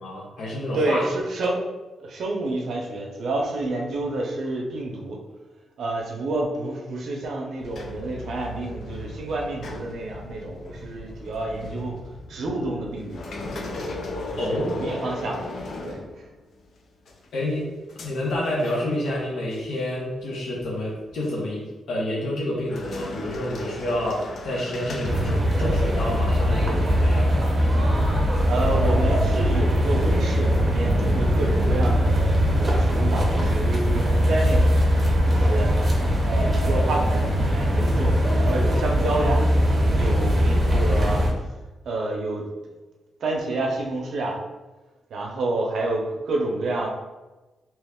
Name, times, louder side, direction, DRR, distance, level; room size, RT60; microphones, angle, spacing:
voice 1, 0.0-1.0 14.4-14.7 17.3-17.7 18.0-27.3 27.6-27.7, left 1 dB, 70° left, -4 dB, 0.9 m, -28 dB
voice 2, 0.7-1.6 2.0-5.2 5.8-12.0 12.3-13.2 14.5-15.4 15.8-16.0 28.5-34.7 35.3-35.7 36.1-39.4 39.9-41.2 41.9-42.5 43.2-44.4 45.1-46.9, right 2 dB, 60° right, 0 dB, 0.6 m, -29 dB
sound 1, 7.6-16.6 17.1-19.2 19.5-19.8 20.5-21.4 22.6-25.9, left 2 dB, 55° left, 0.5 m, -37 dB
sound 2, 25.0-41.3, equal, 20° right, 0.8 m, -21 dB
3.1 x 3.0 x 3.5 m, 1.1 s
wide cardioid pair, 165°, 0 cm